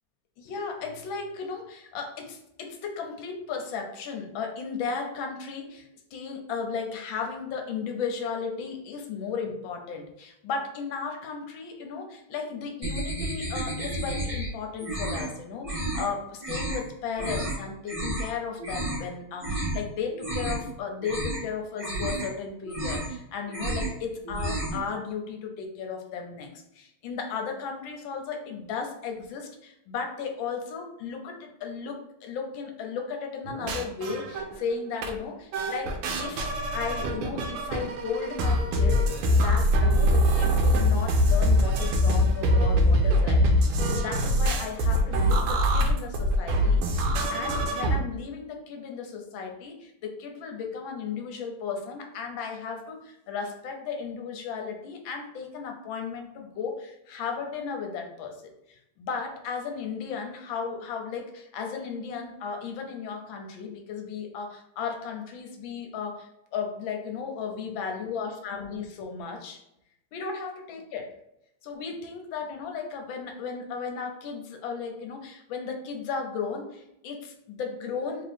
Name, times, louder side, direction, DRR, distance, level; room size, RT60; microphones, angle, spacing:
voice 1, 0.4-26.5 26.7-69.6 70.1-71.1 71.6-78.3, left 5 dB, 70° left, 3 dB, 1.3 m, -35 dB
sound 1, 12.8-14.5 14.8-15.3 15.6-16.1 16.4-16.8 17.2-17.6 17.9-18.3 18.6-19.0 19.4-19.8 20.1-20.7 21.0-21.4 21.8-22.3 22.6-23.2 23.5-24.0 24.2-24.8, right 1 dB, 35° right, 0.5 m, -31 dB
sound 2, 33.5-34.7 35.0-35.2 35.5-48.0, equal, 85° right, 1.6 m, -23 dB
3.9 x 2.8 x 3.3 m, 0.81 s
omnidirectional pair, 2.4 m